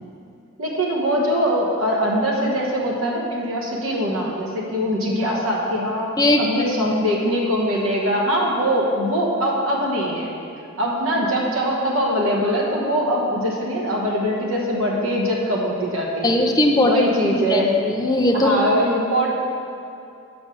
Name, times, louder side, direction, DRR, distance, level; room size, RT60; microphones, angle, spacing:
voice 1, 0.6-6.1 6.4-10.3 10.8-16.4 16.8-17.7 18.3-19.3, equal, 80° right, -2 dB, 1.3 m, -22 dB
voice 2, 16.2-18.6, left 1 dB, 20° left, 2 dB, 0.5 m, -19 dB
5.8 x 5.2 x 6.8 m, 2.7 s
head